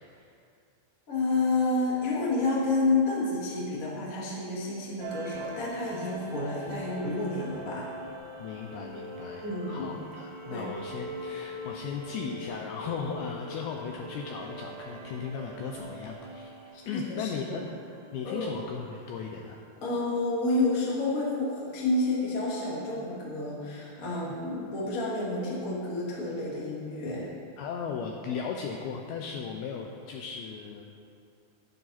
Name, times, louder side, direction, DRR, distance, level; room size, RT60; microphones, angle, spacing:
voice 1, 1.1-7.9 9.4-9.9 10.5-10.6 16.7-17.6 18.2-18.5 19.8-27.3, left 2 dB, 35° left, -6 dB, 1.4 m, -29 dB
sound 1, 5.0-19.1, right 1 dB, 85° right, 3.2 m, -42 dB
voice 2, 8.4-16.5 16.9-17.7 18.1-19.6 24.2-24.4 27.6-30.8, left 6 dB, 80° left, 1 dB, 2.2 m, -37 dB
11.0 x 10.5 x 4.2 m, 2.4 s
omnidirectional pair, 5.0 m